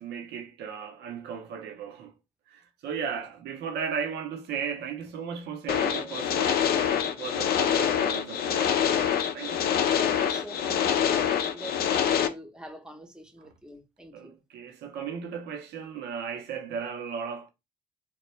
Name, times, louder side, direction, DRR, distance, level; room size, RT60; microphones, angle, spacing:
voice 1, 0.0-2.1 2.5-10.4 13.4-13.5 14.1-17.5, right 7 dB, 75° right, 0.6 m, -36 dB
sound 1, 5.7-12.3, left 9 dB, 60° left, 0.5 m, -25 dB
voice 2, 10.0-14.4, right 1 dB, 5° right, 0.7 m, -44 dB
3.0 x 2.2 x 3.0 m
supercardioid pair, 75°, 18 cm